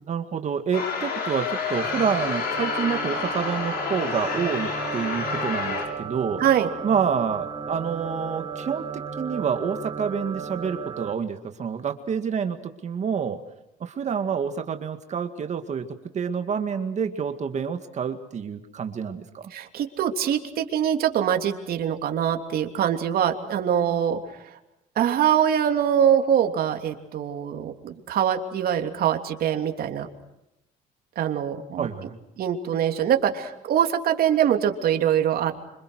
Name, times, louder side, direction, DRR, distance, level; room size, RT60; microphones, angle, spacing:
voice 1, 0.1-6.4 6.8-13.4 13.8-15.9 16.1-19.4 31.8-32.2, right 6 dB, 45° right, 6 dB, 2.0 m, -28 dB
sound 1, 0.7-5.9, left 5 dB, 65° left, 7.0 m, -29 dB
sound 2, 1.7-11.1, right 6 dB, 30° right, 2.5 m, -35 dB
voice 2, 19.5-24.2 25.0-30.1 31.2-31.9 32.4-35.5, right 9 dB, 60° right, 4 dB, 3.0 m, -23 dB
26.5 x 26.0 x 6.3 m, 0.88 s
cardioid pair, 110°, 17 cm